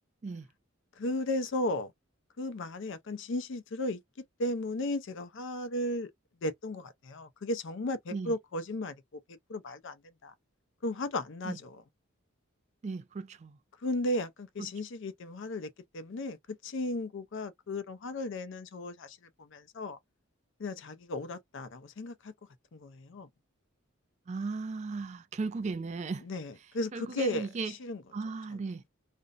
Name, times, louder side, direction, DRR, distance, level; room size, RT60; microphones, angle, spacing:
voice 1, 1.0-1.9 2.4-4.0 4.4-6.1 6.4-9.0 9.3-10.3 10.8-11.8 13.8-20.0 20.6-22.3 22.7-23.3 26.2-28.0 28.5-28.6, left 1 dB, 60° left, 0.5 m, -35 dB
voice 2, 12.8-13.6 24.3-26.3 26.9-27.7 28.1-28.8, right 4 dB, 35° right, 0.3 m, -36 dB
2.5 x 2.0 x 2.4 m
head